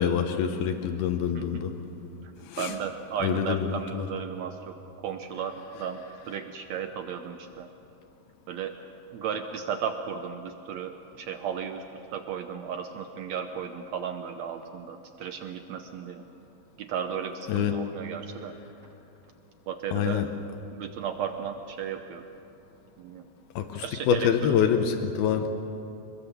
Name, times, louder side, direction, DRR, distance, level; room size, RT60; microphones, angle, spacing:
voice 1, 0.0-1.7 2.5-2.8 3.2-3.7 3.9-4.1 17.5-17.8 19.9-20.3 23.6-25.5, left 8 dB, 80° left, 6 dB, 2.9 m, -26 dB
voice 2, 1.3-1.6 2.2-2.3 2.6-7.7 8.5-8.7 9.1-16.2 16.8-18.5 19.7-20.2 20.7-22.2 23.0-23.3 23.8-24.6, right 7 dB, 90° right, 6 dB, 1.5 m, -35 dB
25.5 x 21.5 x 7.1 m, 2.9 s
omnidirectional pair, 4.3 m